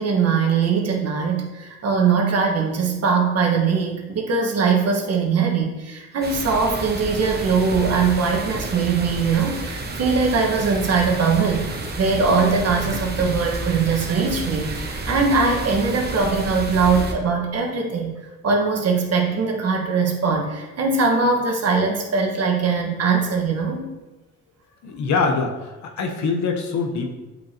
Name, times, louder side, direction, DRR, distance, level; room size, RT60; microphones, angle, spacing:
voice 1, 0.0-18.1 18.4-23.9, right 5 dB, 55° right, 1 dB, 1.5 m, -21 dB
sound 1, 6.2-17.1, right 2 dB, 35° right, 1.0 m, -30 dB
voice 2, 24.8-27.1, left 4 dB, 70° left, 4 dB, 1.1 m, -24 dB
7.8 x 5.0 x 2.9 m, 1.1 s
cardioid pair, 90°, 30 cm